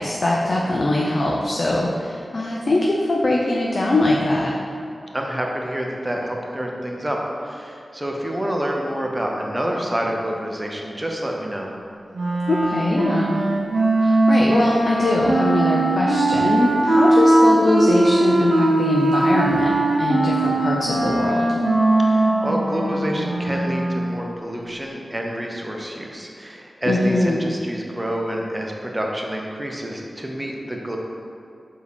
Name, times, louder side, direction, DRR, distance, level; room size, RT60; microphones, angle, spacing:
voice 1, 0.0-4.6 12.5-13.4 14.0-21.5 26.9-27.5, left 1 dB, 60° left, -2 dB, 0.4 m, -22 dB
voice 2, 5.1-11.7 22.0-31.0, equal, 20° right, 0 dB, 0.6 m, -28 dB
Wind instrument woodwind instrument, 12.1-24.2, right 2 dB, 75° right, 0.7 m, -19 dB
4.7 x 2.7 x 3.4 m, 2.5 s
wide cardioid pair, 60°, 0 cm